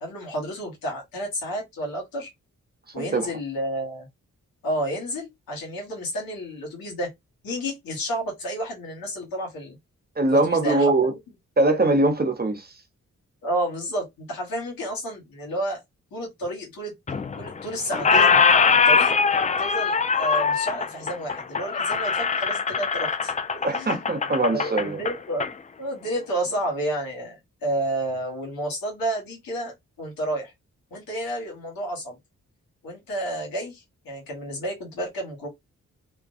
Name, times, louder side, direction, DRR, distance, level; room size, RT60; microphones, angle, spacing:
voice 1, 0.0-2.3 2.9-4.1 4.6-7.1 7.4-9.8 10.3-11.2 13.4-15.8 16.1-16.9 17.4-18.4 18.8-19.1 19.6-25.5 25.8-30.5 30.9-32.2 32.8-35.5, right 1 dB, 85° left, 1.2 m, -31 dB
voice 2, 10.2-11.1 11.6-12.7 23.6-25.0, right 2 dB, 30° right, 0.7 m, -21 dB
Squeak, 17.1-17.6 17.9-25.5, left 5 dB, 25° left, 0.3 m, -22 dB
2.4 x 2.2 x 2.4 m
supercardioid pair, 40°, 34 cm